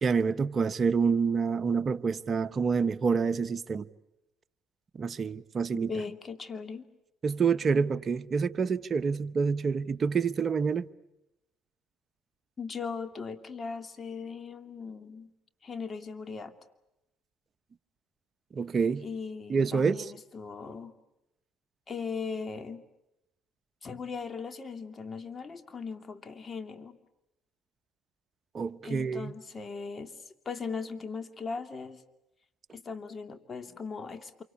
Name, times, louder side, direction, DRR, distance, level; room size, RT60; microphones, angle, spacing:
voice 1, 0.0-3.9 4.9-5.9 7.2-10.9 18.5-19.1 19.5-20.1 28.5-29.3, right 5 dB, 40° right, 1.1 m, -27 dB
voice 2, 5.7-6.9 12.6-15.3 15.6-16.5 19.0-21.0 21.9-22.8 23.8-27.0 28.8-32.0 32.7-34.4, left 5 dB, 35° left, 2.6 m, -39 dB
28.0 x 24.5 x 8.6 m
supercardioid pair, 70°, 0 cm